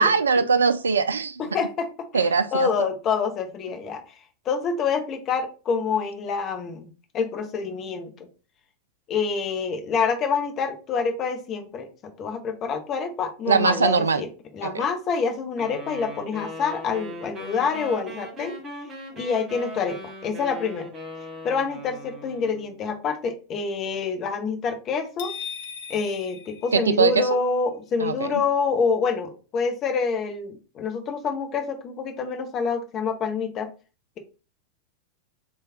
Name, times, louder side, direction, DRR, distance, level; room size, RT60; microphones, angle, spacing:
voice 1, 0.0-1.4 2.1-2.7 13.5-14.2 14.6-14.8 26.7-27.3 28.0-28.4, right 5 dB, 70° right, 10 dB, 0.3 m, -21 dB
voice 2, 1.4-4.0 4.5-6.9 7.1-8.1 9.1-14.3 14.5-18.6 19.1-20.9 21.4-25.3 25.9-33.7, left 5 dB, 30° left, 5 dB, 0.8 m, -27 dB
sound 1, 15.6-22.8, equal, 20° right, 1.4 m, -39 dB
sound 2, 25.2-27.4, left 7 dB, 55° left, 0.5 m, -38 dB
3.2 x 2.3 x 4.2 m, 0.34 s
figure-of-eight pair, 90°, 0 cm